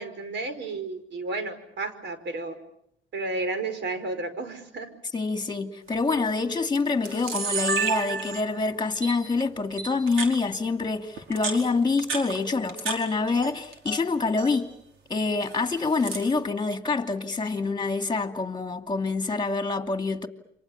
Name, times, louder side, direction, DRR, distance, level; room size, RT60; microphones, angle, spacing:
voice 1, 0.0-2.5 3.1-4.9, right 3 dB, 65° right, 5.0 m, -32 dB
voice 2, 5.1-14.7 15.1-20.3, left 3 dB, 20° left, 2.6 m, -26 dB
Camera, 5.9-6.1 6.7-6.8 7.0-8.6 9.0-9.1 9.8-10.3 11.2-13.0 13.3-14.0 14.3-14.6 15.4-16.3, right 5 dB, 90° right, 4.9 m, -31 dB
29.0 x 25.5 x 7.2 m
cardioid pair, 90°, 20 cm